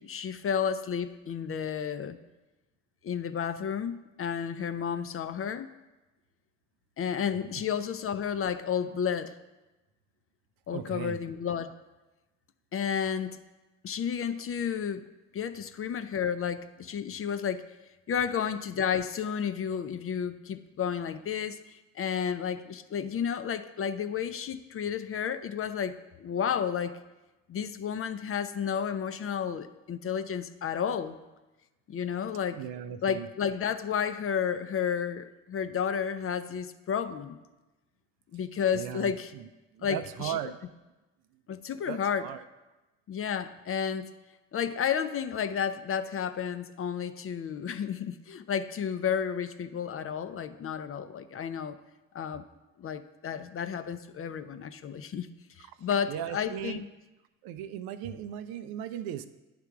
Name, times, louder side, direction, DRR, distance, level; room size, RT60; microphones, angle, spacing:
voice 1, 0.0-2.2 3.0-5.7 7.0-9.4 10.7-11.7 12.7-13.4 13.8-15.0 15.3-17.6 18.1-27.0 27.5-31.2 31.9-32.6 33.0-37.4 38.3-39.3 39.8-40.4 41.5-42.3 43.1-44.1 44.5-51.8 52.1-52.4 52.8-55.3 55.6-56.9, left 7 dB, 35° left, 11 dB, 0.5 m, -32 dB
voice 2, 10.7-11.2 32.5-33.3 38.7-39.5 39.7-40.6 41.9-42.4 56.1-56.8 57.4-59.3, right 10 dB, 70° right, 11 dB, 0.5 m, -37 dB
9.4 x 3.4 x 5.8 m, 1.1 s
hypercardioid pair, 40°, 38 cm